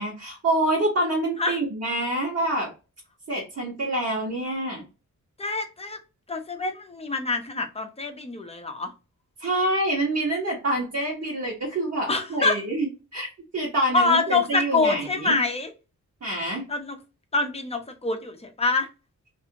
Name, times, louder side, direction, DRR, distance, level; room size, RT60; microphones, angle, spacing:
voice 1, 0.0-2.7 3.3-4.8 9.4-13.3 13.5-15.4 16.2-16.7, right 1 dB, 50° right, 1.1 m, -26 dB
voice 2, 5.4-6.0 6.3-8.9 12.1-12.6 13.9-15.7 16.7-17.0 17.3-18.9, left 3 dB, 20° left, 0.6 m, -25 dB
2.7 x 2.5 x 2.7 m
wide cardioid pair, 125°, 32 cm